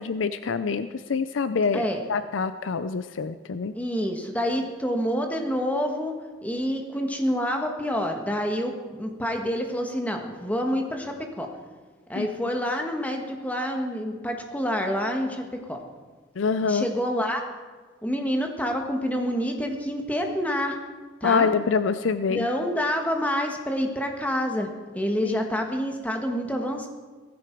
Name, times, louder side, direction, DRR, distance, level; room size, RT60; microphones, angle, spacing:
voice 1, 0.0-1.8 2.1-3.7 12.2-12.3 16.4-16.8 21.2-22.5 25.2-25.4, left 5 dB, 80° left, 12 dB, 0.5 m, -25 dB
voice 2, 3.7-6.1 6.4-11.5 12.1-15.8 16.6-17.4 18.0-20.8 21.2-21.5 22.3-24.7 24.9-26.9, equal, 10° left, 3 dB, 1.4 m, -27 dB
16.5 x 14.5 x 4.6 m, 1.4 s
head